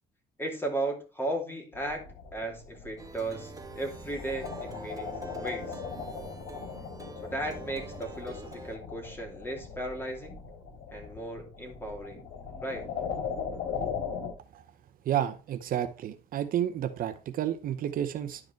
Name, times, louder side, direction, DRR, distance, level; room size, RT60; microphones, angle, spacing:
voice 1, 0.4-2.0 2.3-5.8 7.2-10.4 10.9-12.2 12.6-12.9, right 1 dB, 15° left, 2 dB, 2.8 m, -35 dB
sound 1, 1.7-14.3, left 6 dB, 75° left, 3.7 m, -39 dB
Plucked string instrument, 3.0-8.8, right 3 dB, 20° right, 1.3 m, -45 dB
voice 2, 15.1-18.4, right 10 dB, 55° right, 9 dB, 0.8 m, -31 dB
11.0 x 5.0 x 4.4 m, 0.34 s
cardioid pair, 110°, 17 cm